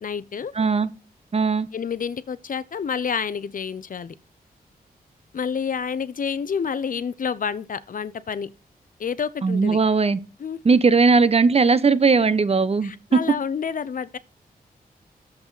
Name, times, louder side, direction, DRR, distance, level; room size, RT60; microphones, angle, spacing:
voice 1, 0.0-0.5 1.7-4.1 5.3-8.5 9.0-9.8 10.4-10.6 12.8-14.2, left 6 dB, 60° left, 0.7 m, -29 dB
voice 2, 0.5-0.9 1.3-1.7 9.4-10.2 10.6-13.2, right 4 dB, 40° right, 0.9 m, -18 dB
8.7 x 7.5 x 4.0 m
cardioid pair, 75°, 16 cm